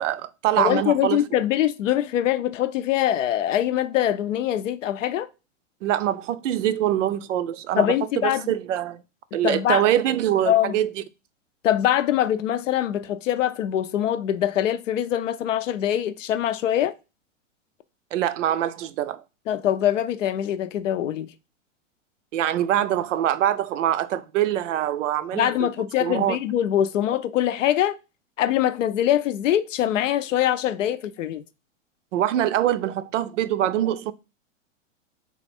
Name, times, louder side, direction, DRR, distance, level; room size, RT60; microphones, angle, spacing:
voice 1, 0.0-1.2 5.8-7.9 8.2-9.0 9.3-10.9 18.1-19.2 22.3-25.7 26.0-26.4 32.1-34.1, right 11 dB, 70° right, 0.5 m, -24 dB
voice 2, 0.6-5.3 7.8-8.4 9.4-9.8 10.5-10.8 11.6-16.9 19.5-21.3 25.3-28.0 28.4-31.4, left 11 dB, 75° left, 0.6 m, -23 dB
3.4 x 2.4 x 4.2 m
hypercardioid pair, 120°, 38 cm